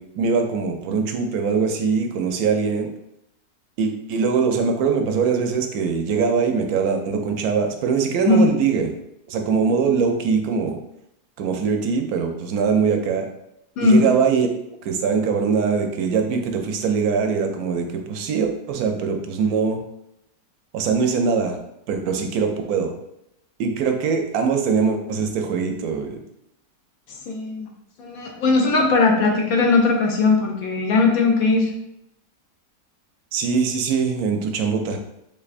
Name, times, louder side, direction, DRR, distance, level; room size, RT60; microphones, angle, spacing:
voice 1, 0.0-2.9 3.8-8.9 9.3-10.8 11.4-13.3 13.8-14.5 14.8-19.8 20.7-21.6 21.9-22.9 23.6-26.2 33.3-35.0, right 5 dB, 70° right, 5 dB, 1.0 m, -22 dB
voice 2, 27.3-27.7 28.0-31.7, left 3 dB, 70° left, 2 dB, 1.0 m, -18 dB
3.7 x 3.3 x 2.4 m, 0.80 s
omnidirectional pair, 1.7 m